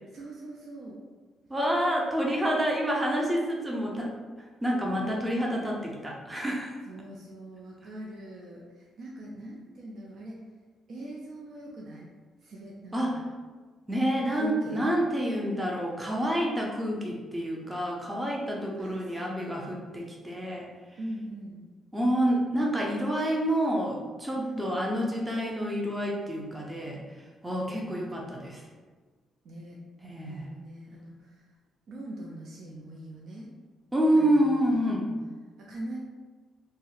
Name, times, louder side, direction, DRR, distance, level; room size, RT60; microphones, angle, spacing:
voice 1, 0.1-1.0 5.0-5.4 6.9-10.4 10.9-12.1 12.4-13.2 14.2-14.9 18.8-19.4 21.0-21.6 24.4-24.7 27.6-28.1 29.4-29.8 30.2-31.5 31.9-33.5 34.1-34.8 35.6-36.0, right 1 dB, 65° right, -3 dB, 0.5 m, -42 dB
voice 2, 1.5-4.1 4.6-6.8 12.9-13.2 13.9-20.7 21.9-27.0 27.4-28.6 30.0-30.5 33.9-35.1, equal, 15° right, -2 dB, 0.5 m, -28 dB
2.6 x 2.0 x 3.8 m, 1.4 s
cardioid pair, 90°, 0 cm